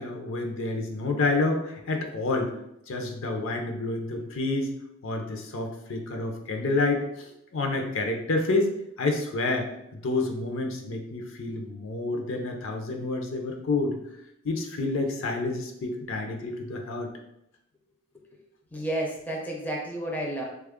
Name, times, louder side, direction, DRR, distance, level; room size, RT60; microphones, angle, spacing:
voice 1, 0.0-2.5 2.9-4.7 5.0-8.7 9.0-9.7 9.9-14.0 14.4-17.1, left 2 dB, 60° left, 3 dB, 0.5 m, -29 dB
voice 2, 18.7-20.4, right 1 dB, 5° left, -2 dB, 0.5 m, -31 dB
3.4 x 2.3 x 3.5 m, 0.80 s
head